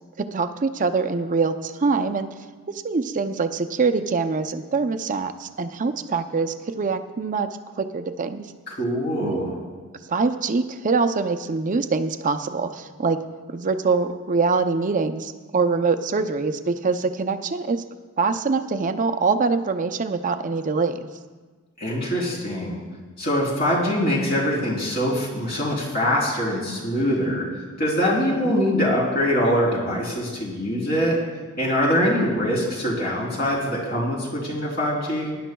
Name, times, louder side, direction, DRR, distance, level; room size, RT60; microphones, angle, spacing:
voice 1, 0.2-2.3 2.7-7.5 7.8-8.4 9.2-9.4 10.1-13.2 13.5-17.8 18.2-21.1 28.4-28.6, right 4 dB, 35° right, 8 dB, 0.5 m, -24 dB
voice 2, 8.7-9.6 21.8-22.8 23.2-27.5 27.8-31.2 31.6-35.3, equal, 45° left, -3 dB, 3.5 m, -23 dB
19.5 x 11.0 x 2.3 m, 1.4 s
head